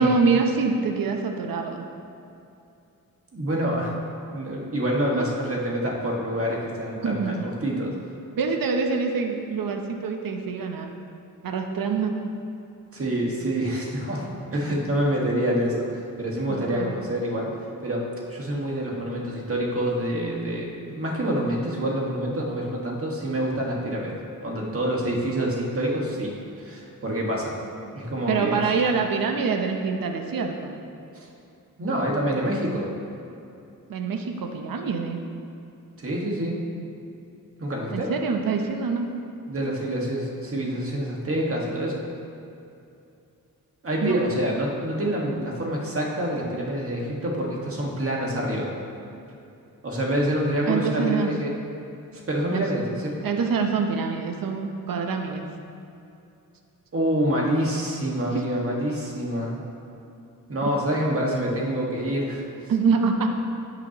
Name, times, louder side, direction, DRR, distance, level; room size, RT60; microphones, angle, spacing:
voice 1, 0.0-1.9 5.1-5.3 7.0-7.3 8.4-10.9 11.4-12.2 16.5-16.9 28.3-30.7 33.9-35.2 37.9-39.1 44.0-44.2 50.7-51.3 52.5-52.6 53.2-55.5 58.3-58.4 62.7-63.3, right 5 dB, 75° right, 4 dB, 0.8 m, -25 dB
voice 2, 3.3-4.0 4.3-7.9 12.9-17.5 17.8-24.2 24.4-27.6 27.9-28.6 28.9-29.0 31.1-31.3 31.8-32.9 36.0-36.6 37.6-38.1 39.5-42.0 43.8-48.7 49.8-51.5 52.1-53.2 56.9-59.6 60.5-62.7, right 1 dB, 40° right, -3 dB, 1.7 m, -27 dB
16.5 x 6.0 x 3.0 m, 2.7 s
wide cardioid pair, 125°, 34 cm